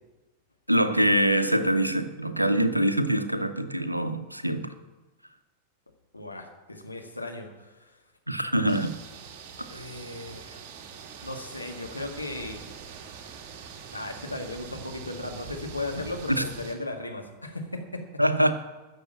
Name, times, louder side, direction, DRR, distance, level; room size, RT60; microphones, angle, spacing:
voice 1, 0.7-4.7 8.3-9.0 9.7-9.8 16.4-16.5 18.2-18.5, right 1 dB, 90° right, 0.9 m, -24 dB
voice 2, 6.1-7.9 9.7-10.6 11.2-12.6 13.9-18.0, left 2 dB, 85° left, 2.0 m, -36 dB
sound 1, 8.7-16.8, right 6 dB, 40° right, 2.1 m, -44 dB
13.0 x 6.8 x 8.8 m
figure-of-eight pair, 90°, 0 cm